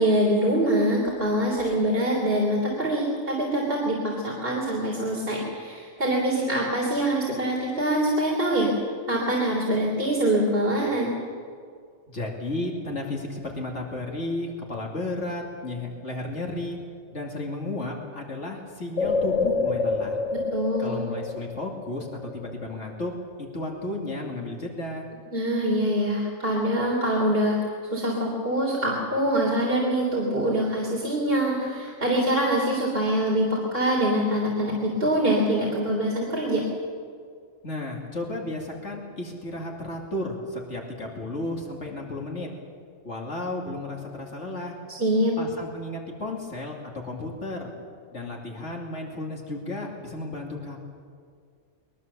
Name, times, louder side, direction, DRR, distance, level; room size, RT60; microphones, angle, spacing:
voice 1, 0.0-8.7 9.1-11.1 20.5-21.0 25.3-27.6 27.9-36.6 44.9-45.3, right 1 dB, 50° right, -3 dB, 3.6 m, -24 dB
voice 2, 12.1-16.8 17.1-20.2 20.8-23.1 23.5-25.0 37.6-42.5 43.0-44.8 45.4-47.7 48.1-50.8, left 2 dB, 75° left, -1 dB, 3.0 m, -33 dB
sound 1, 19.0-22.7 23.0-23.1, left 4 dB, 90° left, 1.3 m, -27 dB
22.5 x 22.0 x 7.0 m, 2.1 s
omnidirectional pair, 1.2 m